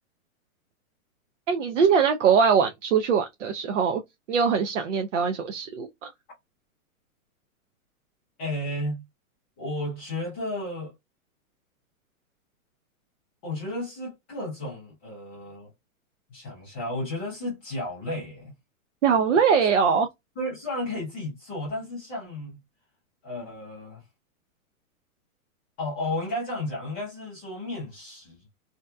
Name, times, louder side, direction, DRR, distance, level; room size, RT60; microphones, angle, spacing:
voice 1, 1.5-4.0 4.3-5.9 19.0-20.1, right 6 dB, 60° right, 0.5 m, -22 dB
voice 2, 8.4-9.0 9.6-10.9 13.4-15.7 16.3-18.5 20.4-22.6 23.2-24.0 25.8-28.4, left 1 dB, 10° left, 0.5 m, -33 dB
2.7 x 2.2 x 2.2 m
hypercardioid pair, 170°, 43 cm